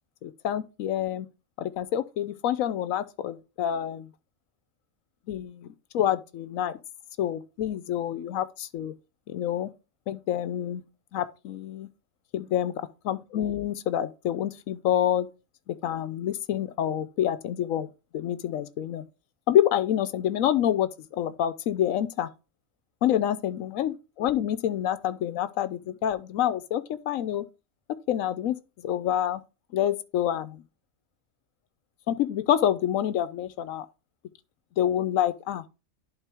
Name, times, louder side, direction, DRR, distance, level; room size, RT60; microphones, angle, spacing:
voice 1, 0.2-1.3 1.6-4.1 5.3-6.7 7.2-8.9 9.3-9.7 10.1-10.8 11.1-11.9 12.3-12.7 13.0-15.3 15.7-17.9 18.1-19.0 19.5-22.3 23.0-27.4 28.1-28.6 28.8-29.4 29.7-30.6 32.1-33.9 34.8-35.6, left 11 dB, 90° left, 1.1 m, -27 dB
11.0 x 4.0 x 3.4 m
omnidirectional pair, 1.4 m